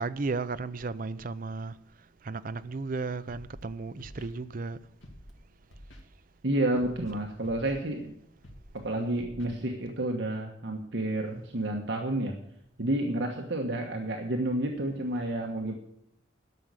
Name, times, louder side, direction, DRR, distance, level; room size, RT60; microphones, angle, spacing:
voice 1, 0.0-1.7 2.2-4.8, right 3 dB, 45° right, 0.5 m, -34 dB
Scratching (performance technique), 3.3-3.6 4.0-4.3 5.0-5.3 5.7-6.0 6.7-7.1 7.4-7.8 8.4-8.8 9.2-9.5, equal, 80° left, 2.3 m, -48 dB
voice 2, 6.4-8.1 8.8-12.3 12.8-15.7, right 1 dB, 65° right, 1.3 m, -30 dB
12.5 x 6.2 x 8.1 m
head